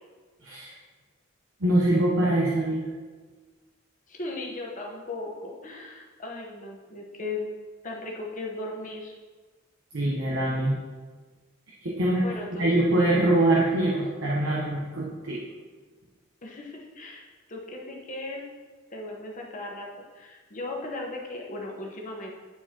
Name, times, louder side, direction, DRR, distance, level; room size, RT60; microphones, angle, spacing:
voice 1, 0.4-0.8 1.6-2.9 9.9-10.7 11.8-12.2 12.5-15.4, right 1 dB, 65° right, -4 dB, 1.0 m, -24 dB
voice 2, 4.1-7.5 7.8-9.1 12.2-12.7 16.4-18.5 18.9-22.3, left 2 dB, 40° left, -1 dB, 1.1 m, -37 dB
9.7 x 4.4 x 2.9 m, 1.4 s
head